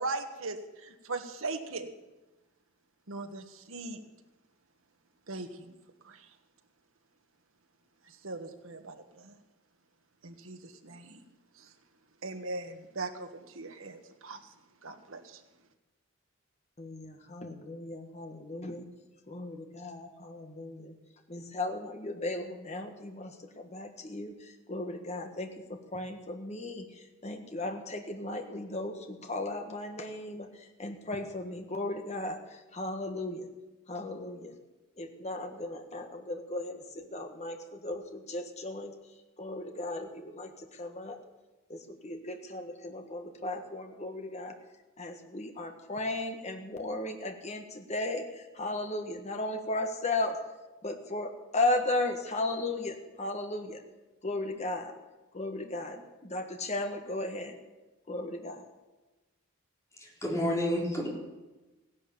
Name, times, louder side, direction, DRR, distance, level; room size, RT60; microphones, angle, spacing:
voice 1, 0.0-1.9 3.1-4.0 5.3-5.7 6.0-6.2 8.1-9.4 10.2-11.2 11.6-11.7 12.2-14.4 14.8-15.4, right 3 dB, 75° right, 6 dB, 1.5 m, -39 dB
voice 2, 16.8-18.8 19.3-20.9 21.3-25.5 25.9-33.5 33.9-34.5 35.0-38.9 39.4-41.2 41.7-44.5 45.0-50.4 50.8-53.8 54.2-54.9 55.3-57.6 58.1-58.6, left 2 dB, 30° left, 5 dB, 1.5 m, -36 dB
voice 3, 59.9-61.1, equal, 15° left, -3 dB, 3.8 m, -30 dB
16.5 x 11.0 x 7.1 m, 1.1 s
head